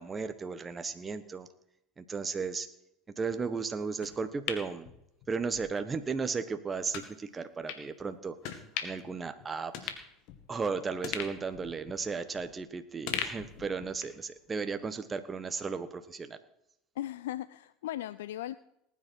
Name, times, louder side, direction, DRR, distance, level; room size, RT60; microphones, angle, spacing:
voice 1, 0.0-1.5 2.0-2.7 3.2-4.9 5.3-9.9 10.5-16.4, right 5 dB, 25° right, 10 dB, 1.3 m, -35 dB
sound 1, 4.0-5.6 6.0-6.1 6.9-7.1 7.7-7.8 8.4-9.1 9.4-9.5 9.7-10.6 11.0-12.6 13.1-14.2 14.6-14.7, left 9 dB, 65° left, 2.1 m, -39 dB
voice 2, 17.0-18.5, left 13 dB, 80° left, 16 dB, 0.4 m, -37 dB
19.5 x 9.7 x 4.6 m, 0.81 s
hypercardioid pair, 80°, 0 cm